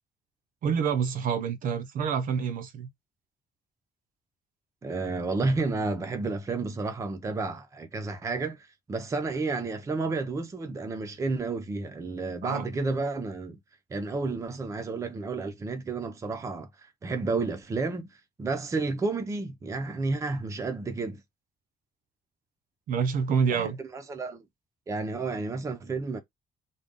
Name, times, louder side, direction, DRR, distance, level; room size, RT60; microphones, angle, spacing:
voice 1, 0.6-2.9 12.4-12.7 22.9-23.8, right 6 dB, 55° right, 0.6 m, -27 dB
voice 2, 4.8-13.6 13.9-16.7 17.0-18.1 18.4-21.2 23.5-24.4 24.9-26.2, right 3 dB, 20° right, 0.5 m, -31 dB
3.8 x 2.3 x 3.6 m
cardioid pair, 180°, 17 cm